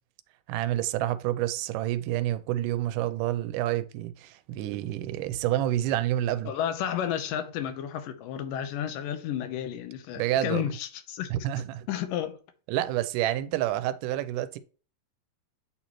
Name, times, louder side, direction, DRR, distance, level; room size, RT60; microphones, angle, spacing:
voice 1, 0.5-6.5 10.2-10.7 11.3-11.9 12.7-14.6, right 13 dB, 80° right, 2.0 m, -28 dB
voice 2, 6.4-11.3 11.9-12.4, left 10 dB, 90° left, 2.5 m, -32 dB
8.5 x 4.1 x 3.0 m
omnidirectional pair, 3.8 m